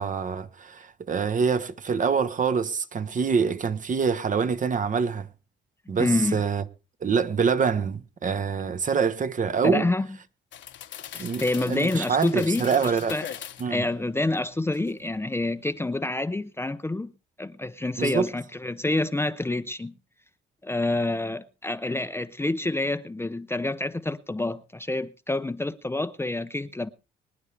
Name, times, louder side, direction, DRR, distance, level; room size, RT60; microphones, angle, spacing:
voice 1, 0.0-5.3 5.9-6.6 7.0-9.9 11.2-13.2 13.6-13.8 18.0-18.3, right 6 dB, 40° right, 1.0 m, -25 dB
voice 2, 6.0-6.4 9.6-10.1 11.1-13.3 13.7-17.1 17.4-19.9 20.6-26.9, left 2 dB, 10° left, 0.6 m, -27 dB
sound 1, 10.5-13.7 14.2-15.2 15.5-15.7, left 10 dB, 70° left, 1.2 m, -41 dB
24.5 x 9.6 x 3.3 m
cardioid pair, 90°, 20 cm